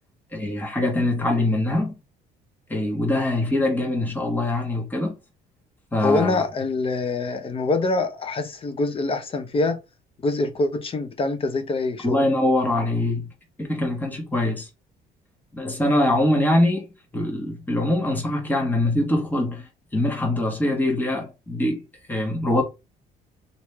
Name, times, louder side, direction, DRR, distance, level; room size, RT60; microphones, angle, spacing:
voice 1, 0.3-1.9 2.7-5.1 5.9-6.4 12.0-13.3 13.6-14.7 15.5-16.9 17.1-21.8 22.1-22.6, left 1 dB, 10° left, 1.3 m, -23 dB
voice 2, 6.0-9.8 10.2-12.2, left 3 dB, 35° left, 0.8 m, -25 dB
3.1 x 2.7 x 3.2 m
cardioid pair, 110°, 17 cm